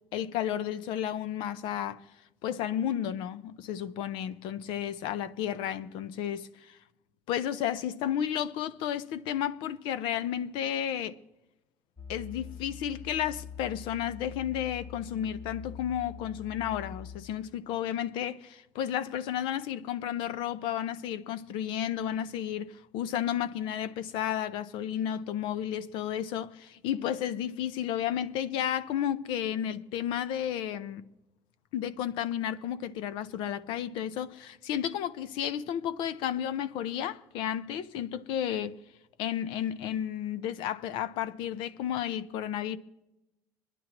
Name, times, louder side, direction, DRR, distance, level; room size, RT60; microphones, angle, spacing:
voice 1, 0.1-2.0 2.4-6.8 7.3-11.1 12.1-31.0 31.7-38.8 39.2-42.8, left 10 dB, 90° left, 0.6 m, -32 dB
sound 1, 12.0-17.2, left 7 dB, 25° left, 1.8 m, -44 dB
23.5 x 11.0 x 2.9 m
cardioid pair, 135°, 8 cm